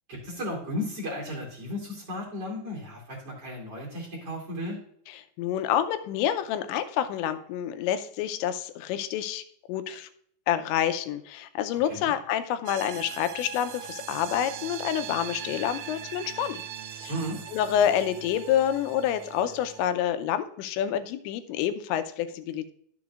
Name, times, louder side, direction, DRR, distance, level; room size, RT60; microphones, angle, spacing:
voice 1, 0.1-4.8 11.9-12.1 17.1-17.4, left 1 dB, 40° right, -3 dB, 2.9 m, -34 dB
voice 2, 5.1-10.1 10.5-16.6 17.0-17.1 17.5-22.7, left 10 dB, 90° left, 10 dB, 2.9 m, -28 dB
sound 1, 12.7-19.8, right 9 dB, 80° right, 2.6 m, -40 dB
12.5 x 6.9 x 2.4 m, 0.65 s
omnidirectional pair, 5.1 m